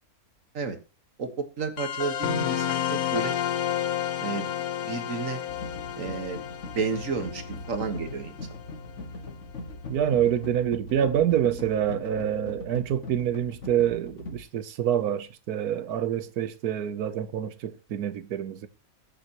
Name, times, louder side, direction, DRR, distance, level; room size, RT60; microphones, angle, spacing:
voice 1, 1.2-3.3 4.2-4.5 4.8-5.4 6.0-6.4 6.7-8.4, right 4 dB, 60° right, 1.9 m, -31 dB
sound 1, 1.8-8.9, left 10 dB, 85° left, 1.5 m, -31 dB
sound 2, 5.5-14.4, left 2 dB, 55° left, 2.0 m, -40 dB
voice 2, 9.9-18.7, right 10 dB, 85° right, 1.4 m, -26 dB
22.0 x 7.7 x 3.0 m
omnidirectional pair, 1.6 m